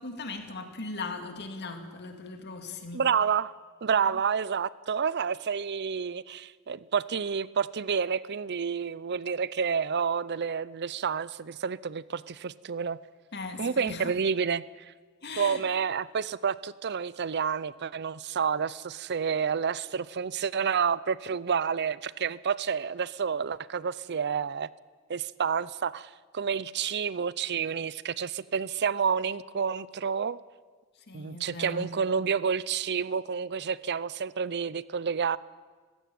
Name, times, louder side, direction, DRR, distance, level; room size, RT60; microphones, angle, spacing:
voice 1, 0.0-3.1 4.0-4.2 13.3-14.1 15.2-15.6 31.0-31.9, left 3 dB, 55° left, 6 dB, 2.4 m, -39 dB
voice 2, 2.9-3.5 3.8-13.0 13.6-14.9 15.4-24.7 25.1-30.4 31.1-35.4, right 6 dB, 55° right, 19 dB, 0.6 m, -29 dB
19.0 x 15.5 x 9.3 m, 1.5 s
head